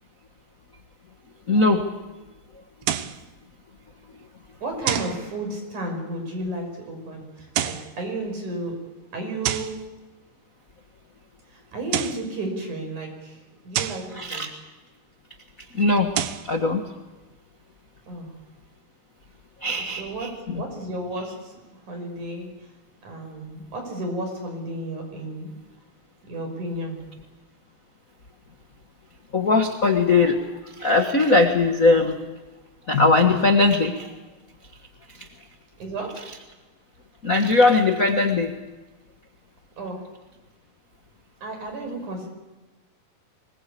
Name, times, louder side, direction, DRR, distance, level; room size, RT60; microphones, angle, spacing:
voice 1, 1.5-1.9 14.2-14.5 15.7-16.1 16.5-16.8 19.6-20.6 29.3-30.4 30.8-32.2 32.9-34.1 37.2-38.5, left 3 dB, 70° left, 4 dB, 0.7 m, -19 dB
sound 1, 2.8-3.2 4.9-5.2 7.4-7.9 9.4-9.8 11.7-12.3 13.7-14.1 16.0-16.5, right 11 dB, 85° right, 3.0 m, -27 dB
voice 2, 4.6-8.8 9.1-9.8 11.5-13.4 13.7-14.5 18.1-18.3 19.7-22.5 23.0-25.5 26.2-27.0 35.8-36.2 39.8-40.0 41.4-42.3, right 1 dB, 50° right, 3 dB, 7.0 m, -33 dB
25.0 x 21.0 x 8.5 m, 1.2 s
omnidirectional pair, 4.4 m